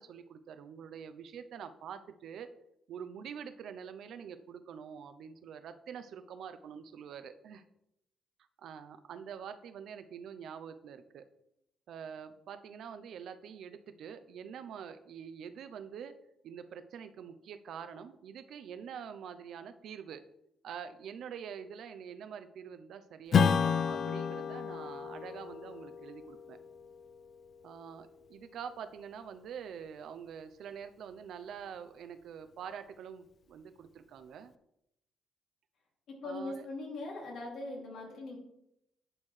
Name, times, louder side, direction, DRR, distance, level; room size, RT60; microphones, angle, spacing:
voice 1, 0.0-2.5 2.9-7.6 8.6-11.3 11.9-16.1 16.4-20.2 20.6-26.6 27.6-34.5 36.2-36.7, right 7 dB, 75° right, 11 dB, 0.6 m, -46 dB
Strum, 23.3-28.2, left 6 dB, 55° left, 0.4 m, -32 dB
voice 2, 36.1-38.4, left 2 dB, 75° left, -2 dB, 2.7 m, -40 dB
10.5 x 4.4 x 3.2 m, 0.80 s
cardioid pair, 85°, 0 cm